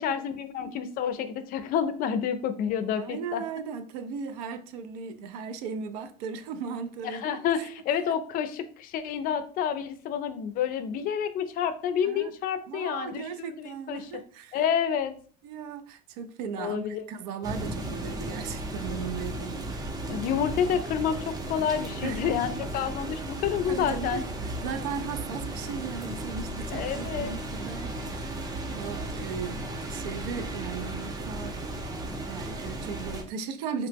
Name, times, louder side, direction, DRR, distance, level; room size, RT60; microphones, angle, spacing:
voice 1, 0.0-3.4 7.0-14.1 14.5-15.1 16.6-17.1 20.1-24.2 26.7-27.3, left 8 dB, 45° left, 0.4 m, -29 dB
voice 2, 3.0-7.7 8.1-8.2 12.0-12.3 12.7-14.6 15.4-19.9 22.0-22.3 23.7-31.6 32.3-33.9, right 6 dB, 85° right, 0.4 m, -37 dB
sound 1, 17.4-33.2, right 1 dB, 20° right, 0.5 m, -35 dB
2.9 x 2.0 x 3.3 m
supercardioid pair, 115°, 20 cm